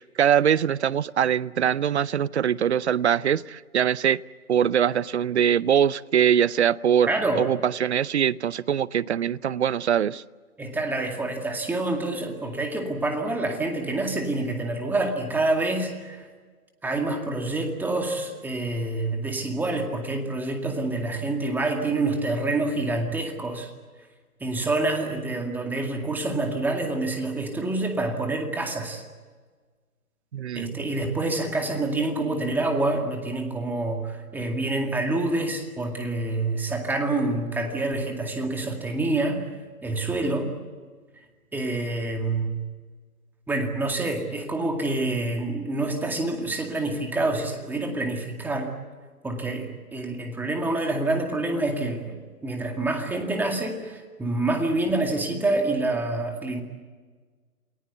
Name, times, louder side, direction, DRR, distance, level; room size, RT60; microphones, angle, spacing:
voice 1, 0.0-4.2 4.5-7.1 7.4-10.2 30.3-30.8, right 9 dB, 50° right, 0.7 m, -22 dB
voice 2, 7.1-7.5 10.6-16.2 16.8-23.7 24.4-29.0 30.5-39.5 39.8-40.5 41.5-42.5 43.5-48.8 49.2-56.6, right 2 dB, 5° right, 2.1 m, -27 dB
28.5 x 20.0 x 8.2 m
hypercardioid pair, 145°, 45 cm